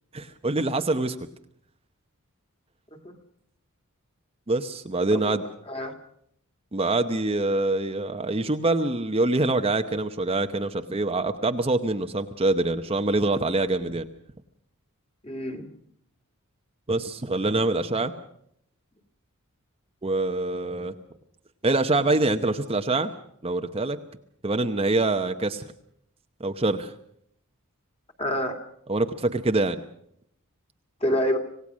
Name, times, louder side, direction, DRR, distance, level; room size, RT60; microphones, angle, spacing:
voice 1, 0.1-1.3 4.5-5.4 6.7-14.1 16.9-18.1 20.0-20.9 21.6-23.1 23.4-24.0 24.4-25.6 26.4-26.9 28.9-29.8, right 2 dB, 25° right, 7 dB, 0.9 m, -25 dB
voice 2, 15.2-15.7 28.2-28.6 31.0-31.4, equal, 25° left, 5 dB, 2.5 m, -27 dB
26.5 x 17.5 x 6.3 m, 0.70 s
head